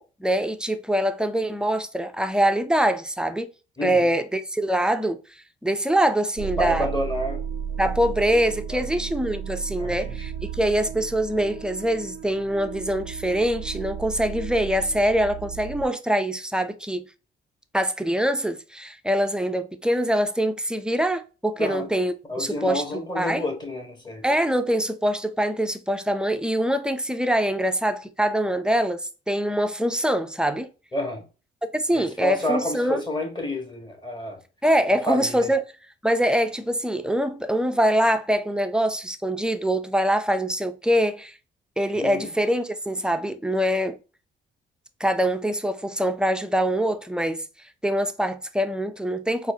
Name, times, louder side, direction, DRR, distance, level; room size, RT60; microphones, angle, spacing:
voice 1, 0.0-3.5 3.8-5.2 5.6-6.9 7.8-17.0 17.7-22.8 23.2-23.4 24.2-30.7 31.7-33.0 34.6-35.6 36.0-41.3 41.8-44.0 45.0-47.4 47.8-49.5, equal, 5° right, 0.4 m, -24 dB
sound 1, 6.4-15.9, right 8 dB, 90° right, 0.5 m, -34 dB
voice 2, 6.6-7.4 8.7-8.8 9.8-10.2 21.6-21.9 22.3-24.2 30.9-31.2 31.9-34.4 34.9-35.5 41.9-42.3, left 1 dB, 20° left, 1.3 m, -29 dB
4.1 x 2.4 x 2.7 m
cardioid pair, 90°, 20 cm